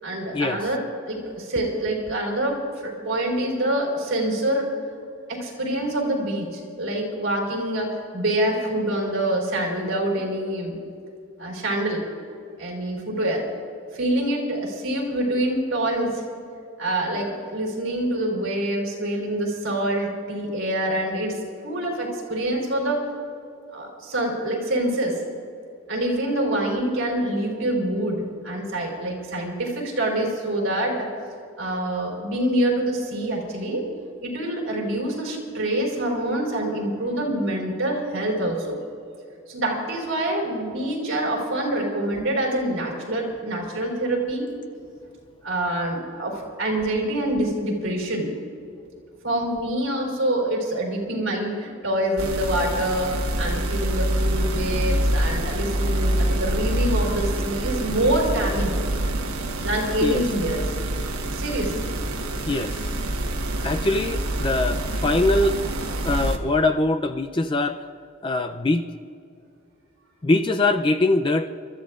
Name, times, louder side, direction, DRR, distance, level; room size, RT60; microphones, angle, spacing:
voice 1, 0.0-4.7 5.3-10.8 11.4-12.0 12.6-13.4 13.9-16.2 16.8-21.4 21.6-23.1 23.7-25.2 25.9-31.1 31.6-33.9 34.2-38.8 39.5-44.5 45.4-48.3 49.2-58.8 59.6-60.6 61.4-61.9, right 1 dB, 60° right, -2 dB, 4.1 m, -26 dB
sound 1, 52.2-66.4, right 1 dB, 85° right, 1.2 m, -26 dB
voice 2, 62.5-62.8 63.6-65.6 66.0-67.9 68.2-68.9 70.2-71.5, left 2 dB, 25° left, 7 dB, 0.4 m, -22 dB
29.0 x 14.0 x 2.5 m, 2.4 s
head